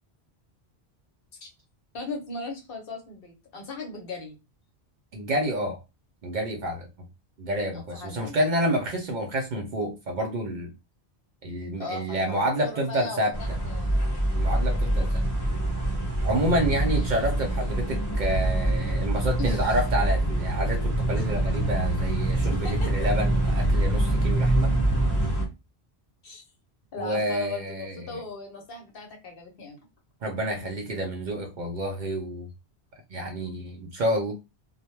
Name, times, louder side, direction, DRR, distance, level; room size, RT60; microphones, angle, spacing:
voice 1, 1.9-4.4 7.7-8.4 11.8-14.2 16.8-17.4 19.4-19.8 22.5-22.9 26.2-26.4 26.9-29.8, left 3 dB, 65° left, 0.9 m, -38 dB
voice 2, 5.1-5.8 6.2-7.1 7.4-10.7 11.4-13.3 14.4-15.3 16.2-24.7 27.0-28.2 30.2-32.5 33.1-34.3, right 1 dB, 60° right, 0.6 m, -29 dB
sound 1, 13.3-25.4, right 1 dB, 20° left, 0.8 m, -25 dB
2.1 x 2.0 x 3.0 m
omnidirectional pair, 1.1 m